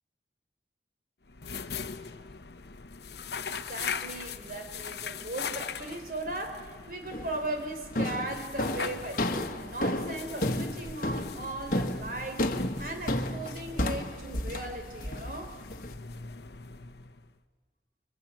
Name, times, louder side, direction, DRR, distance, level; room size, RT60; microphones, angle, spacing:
sound 1, 1.2-17.4, left 6 dB, 70° left, 1.0 m, -41 dB
voice 1, 3.4-12.5 12.8-15.6, right 2 dB, 50° right, 5 dB, 3.9 m, -38 dB
sound 2, 7.1-7.5 8.0-15.9, left 1 dB, 50° left, 1.5 m, -32 dB
25.5 x 23.5 x 9.1 m, 1.5 s
head